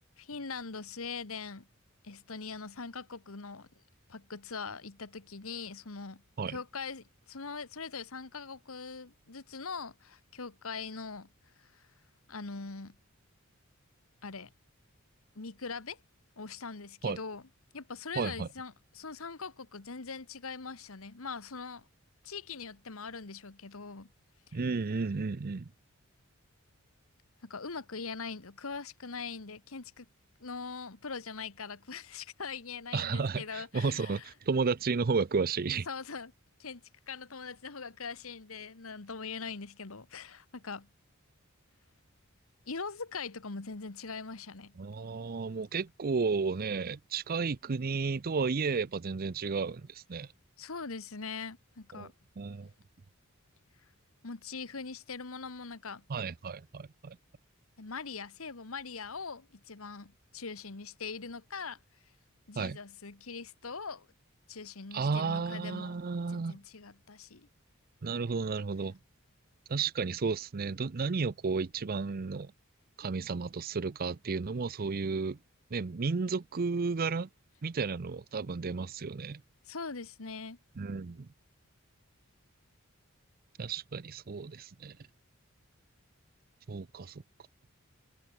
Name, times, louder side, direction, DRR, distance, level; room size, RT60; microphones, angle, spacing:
voice 1, 0.2-1.7 2.0-3.7 4.1-6.2 6.5-11.3 11.6-11.9 12.3-12.9 14.2-14.5 15.3-16.0 16.4-17.5 17.7-21.9 22.2-24.1 24.5-24.6 27.4-30.1 30.4-34.3 35.7-36.3 36.6-40.9 42.7-44.8 50.6-52.1 54.2-56.0 57.8-61.8 62.5-64.1 64.5-67.5 79.6-80.6, left 4 dB, 70° left, 1.4 m, -42 dB
voice 2, 18.2-18.5 24.5-25.7 32.9-35.9 44.8-50.3 51.9-52.1 52.4-52.7 56.1-57.2 62.6-62.8 64.9-66.6 68.0-69.0 69.7-72.5 73.0-75.4 75.7-77.3 77.6-79.4 80.8-81.3 83.6-85.0 86.7-87.2, right 4 dB, 45° right, 0.5 m, -33 dB
head